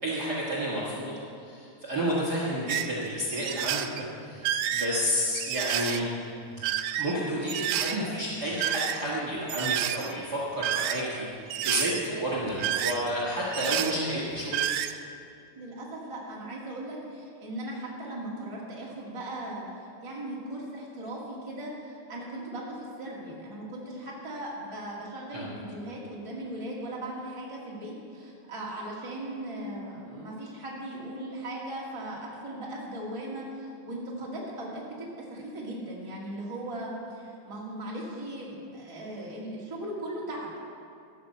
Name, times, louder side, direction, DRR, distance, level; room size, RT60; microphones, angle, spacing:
voice 1, 0.0-1.2 1.5-6.0 7.0-14.6 25.3-25.5, equal, 40° right, -6 dB, 1.9 m, -31 dB
sound 1, 2.7-2.9 3.3-4.0 4.4-6.0 6.5-7.1 7.5-8.0 8.5-9.2 9.5-10.1 10.6-11.1 11.5-12.0 12.4-13.2 13.5-14.0 14.3-14.9, right 11 dB, 85° right, 1.5 m, -30 dB
voice 2, 15.6-40.6, right 1 dB, 10° right, -5 dB, 1.8 m, -38 dB
13.5 x 6.8 x 7.7 m, 2.4 s
omnidirectional pair, 3.4 m